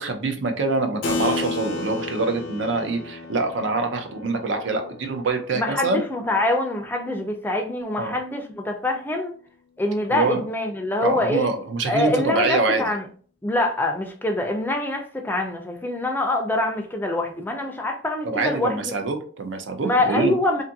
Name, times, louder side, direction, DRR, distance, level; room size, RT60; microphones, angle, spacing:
voice 1, 0.0-6.0 8.0-8.2 10.1-10.4 11.0-12.8 18.2-20.3, right 3 dB, 75° right, 0.5 m, -25 dB
Keyboard (musical), 1.0-7.0, left 3 dB, 85° left, 0.5 m, -33 dB
voice 2, 5.5-9.3 9.8-11.5 11.9-13.0 13.4-18.9 19.8-20.6, left 2 dB, 10° left, 0.4 m, -25 dB
2.6 x 2.5 x 2.6 m
head